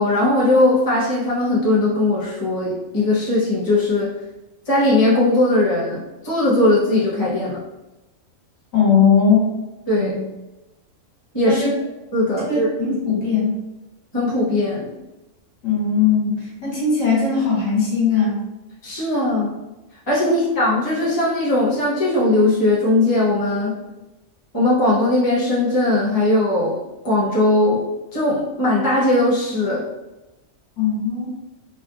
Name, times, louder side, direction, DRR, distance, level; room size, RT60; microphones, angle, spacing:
voice 1, 0.0-4.1 4.7-7.6 9.9-10.2 11.3-11.6 12.1-13.0 14.1-14.9 18.8-19.5 20.1-23.7 24.5-26.7 27.0-27.8 28.1-29.8, left 2 dB, 20° left, -7 dB, 0.9 m, -19 dB
voice 2, 8.7-9.4 9.9-10.2 11.4-11.7 12.5-13.5 15.6-18.4 20.2-20.4 30.8-31.3, left 6 dB, 70° left, -5 dB, 1.4 m, -19 dB
3.9 x 2.2 x 2.4 m, 1.0 s
omnidirectional pair, 1.4 m